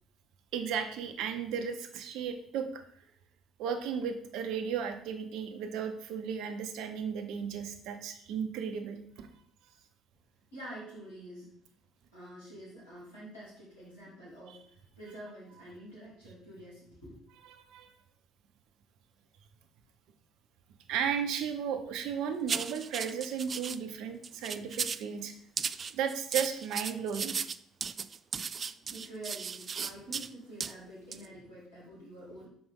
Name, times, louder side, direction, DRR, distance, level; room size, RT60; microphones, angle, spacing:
voice 1, 0.5-2.8 3.6-9.3 17.5-17.9 20.9-25.3 25.9-27.3, right 7 dB, 65° right, 7 dB, 0.8 m, -35 dB
voice 2, 10.5-11.5 12.1-17.2 28.8-32.5, right 1 dB, 85° left, -9 dB, 2.9 m, -47 dB
sound 1, 22.5-23.8 24.2-25.1 25.6-30.3 30.6-30.7 31.1-31.3, right 6 dB, 40° right, 0.3 m, -35 dB
6.0 x 5.2 x 3.7 m, 0.65 s
figure-of-eight pair, 50°, 0 cm